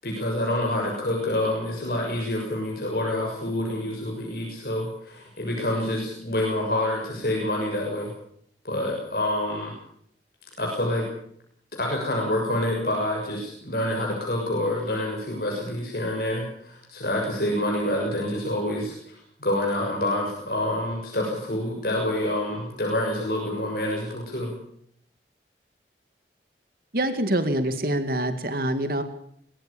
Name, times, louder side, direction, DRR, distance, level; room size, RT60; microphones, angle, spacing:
voice 1, 0.0-8.1 8.6-9.8 10.6-11.0 11.7-24.5, left 1 dB, 55° left, -1 dB, 6.8 m, -27 dB
voice 2, 26.9-29.0, right 1 dB, 55° right, 9 dB, 2.2 m, -25 dB
23.0 x 19.0 x 7.0 m, 0.66 s
head